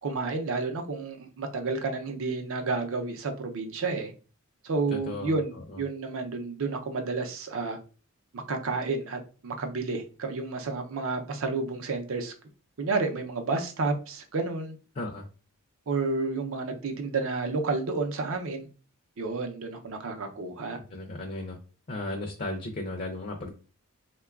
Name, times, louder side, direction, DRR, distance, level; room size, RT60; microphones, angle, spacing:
voice 1, 0.0-4.1 4.6-7.8 8.3-12.3 12.8-14.8 15.9-18.7 19.2-20.8, right 3 dB, 65° right, 0.5 m, -31 dB
voice 2, 4.9-5.8 15.0-15.2 20.9-21.6 21.9-23.5, left 2 dB, 40° left, 0.4 m, -35 dB
3.7 x 2.2 x 2.3 m
head